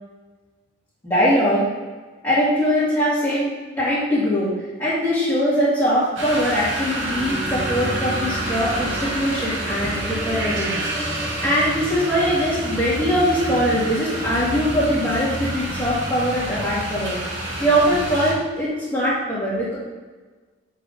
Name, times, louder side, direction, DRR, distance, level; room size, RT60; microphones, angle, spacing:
voice 1, 1.0-1.7 2.2-17.2 17.6-19.8, equal, 15° left, -13 dB, 2.2 m, -22 dB
sound 1, 6.2-18.3, right 1 dB, 65° right, 1.9 m, -29 dB
sound 2, 7.0-16.8, right 1 dB, 15° right, 0.4 m, -33 dB
7.6 x 5.4 x 4.1 m, 1.3 s
head